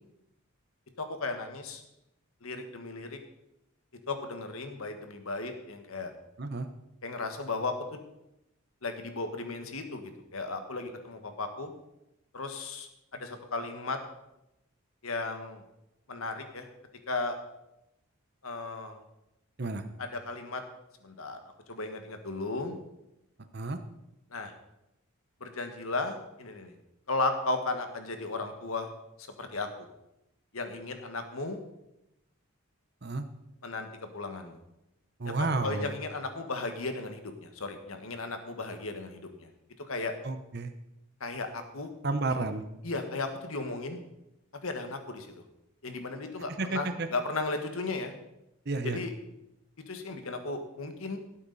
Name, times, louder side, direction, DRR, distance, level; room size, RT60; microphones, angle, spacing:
voice 1, 1.0-1.8 2.4-3.2 4.1-6.1 7.0-8.0 8.8-11.7 12.3-14.0 15.0-15.6 16.1-16.7 17.1-17.4 18.4-19.0 20.0-20.6 21.0-21.4 21.7-22.8 24.3-24.5 25.4-26.7 27.1-28.9 29.2-29.9 30.5-31.6 33.6-33.9 34.1-34.6 35.2-39.5 39.8-40.1 41.2-41.9 42.8-44.0 44.6-45.3 45.8-48.1 48.8-49.1 49.9-51.2, left 3 dB, 75° left, 6 dB, 1.6 m, -35 dB
voice 2, 35.2-35.9 40.2-40.7 42.0-42.7 46.6-47.1 48.7-49.0, right 3 dB, 50° right, 8 dB, 0.8 m, -31 dB
17.0 x 8.5 x 4.1 m, 0.88 s
head